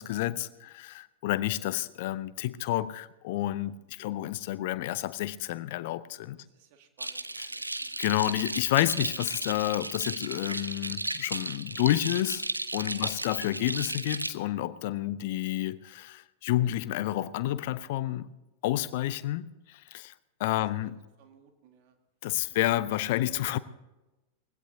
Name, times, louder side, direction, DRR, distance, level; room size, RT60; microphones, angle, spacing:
voice 1, 0.0-6.4 8.0-12.4 12.7-18.3 18.6-20.1 20.4-21.0 22.2-23.6, left 15 dB, 50° left, 0.6 m, -30 dB
voice 2, 6.4-8.0 11.7-11.8 12.9-13.2 19.0-19.2 20.8-20.9 21.2-22.0 22.5-22.6, right 7 dB, 45° right, 2.0 m, -59 dB
sound 1, 7.0-14.3, right 2 dB, 85° right, 0.7 m, -35 dB
21.5 x 16.5 x 2.8 m
figure-of-eight pair, 90°, 0 cm